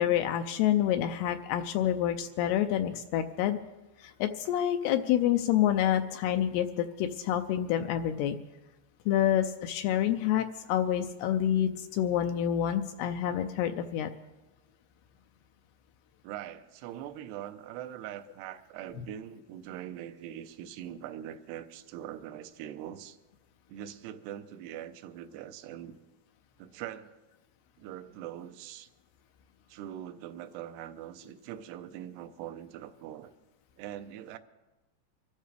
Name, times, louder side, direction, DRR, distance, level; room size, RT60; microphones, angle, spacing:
voice 1, 0.0-3.6 4.0-8.4 9.1-14.1, left 11 dB, 80° left, 2.5 m, -28 dB
voice 2, 16.2-23.2 23.7-26.0 26.6-27.1 27.8-28.9 29.7-33.3 33.8-34.4, right 11 dB, 80° right, 2.7 m, -42 dB
24.5 x 13.0 x 3.4 m
omnidirectional pair, 4.9 m